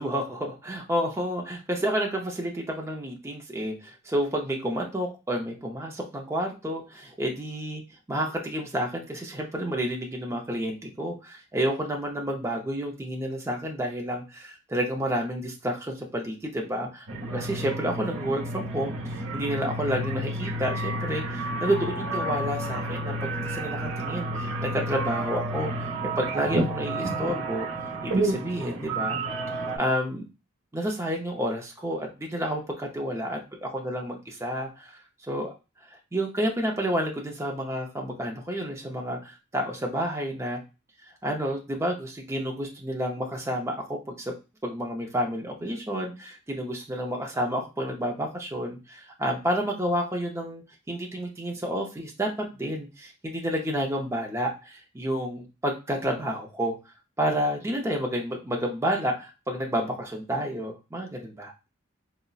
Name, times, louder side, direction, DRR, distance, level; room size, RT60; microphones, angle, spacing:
voice 1, 0.0-7.8 8.1-27.7 28.0-29.2 29.7-30.2 30.7-34.9 35.3-35.5 36.1-40.6 41.2-44.3 44.6-56.8 57.2-61.5, equal, 15° right, 1 dB, 0.5 m, -30 dB
sound 1, 17.1-29.8, right 2 dB, 85° right, 0.8 m, -30 dB
3.9 x 2.1 x 2.3 m, 0.28 s
head